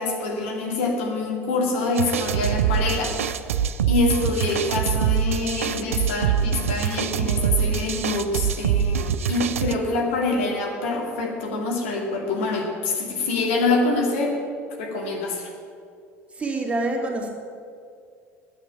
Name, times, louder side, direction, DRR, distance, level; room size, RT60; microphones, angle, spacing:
voice 1, 0.0-3.2 3.8-14.4 14.8-15.5, left 3 dB, 70° left, -1 dB, 2.4 m, -25 dB
sound 1, 2.0-9.7, right 8 dB, 80° right, 0.5 m, -24 dB
voice 2, 16.3-17.3, right 2 dB, 15° right, 0 dB, 2.6 m, -26 dB
9.7 x 9.4 x 9.5 m, 2.3 s
figure-of-eight pair, 65°, 7 cm